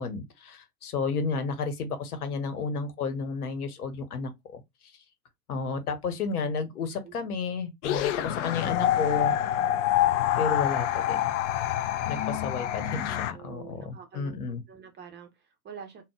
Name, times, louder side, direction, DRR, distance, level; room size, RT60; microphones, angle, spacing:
voice 1, 0.0-4.6 5.5-9.3 10.4-11.3 12.1-14.6, left 4 dB, 70° left, 1.1 m, -32 dB
voice 2, 6.9-7.3 12.0-12.8 13.0-16.0, right 7 dB, 25° right, 0.9 m, -48 dB
sound 1, 7.8-13.3, left 12 dB, 55° left, 0.5 m, -26 dB
3.8 x 2.4 x 3.6 m
figure-of-eight pair, 95°, 46 cm